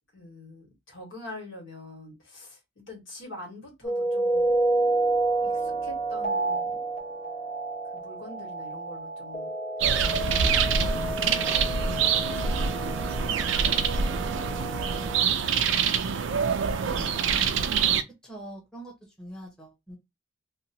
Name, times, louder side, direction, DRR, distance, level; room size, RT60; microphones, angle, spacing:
voice 1, 0.1-4.6 5.4-6.9 7.9-9.5 11.0-13.0 14.2-15.7, left 1 dB, 75° left, 1.5 m, -45 dB
sound 1, 3.8-15.2, right 2 dB, 40° left, 1.2 m, -30 dB
sound 2, 9.8-18.0, right 6 dB, 70° right, 0.4 m, -25 dB
voice 2, 16.8-17.6 18.2-20.0, right 1 dB, 5° left, 0.9 m, -43 dB
2.8 x 2.2 x 2.7 m
head